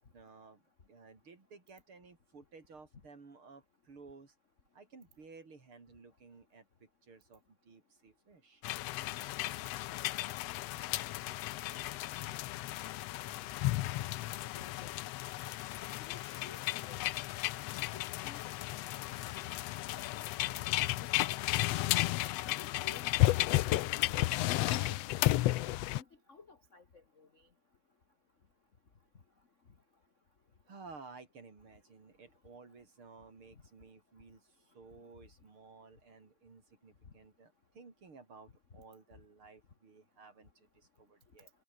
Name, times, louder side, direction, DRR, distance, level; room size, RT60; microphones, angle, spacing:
voice 1, 0.1-0.6 0.9-4.3 4.7-8.6 30.7-41.5, right 4 dB, 40° right, 4.4 m, -55 dB
sound 1, 8.6-26.0, left 17 dB, 80° left, 1.5 m, -33 dB
voice 2, 14.5-15.0 16.0-17.0 17.9-18.4 19.2-19.3 19.9-20.4 20.7-21.6 22.2-23.3 24.4-25.0 25.4-26.8 27.2-27.3, left 4 dB, 35° left, 1.3 m, -54 dB
omnidirectional pair, 3.5 m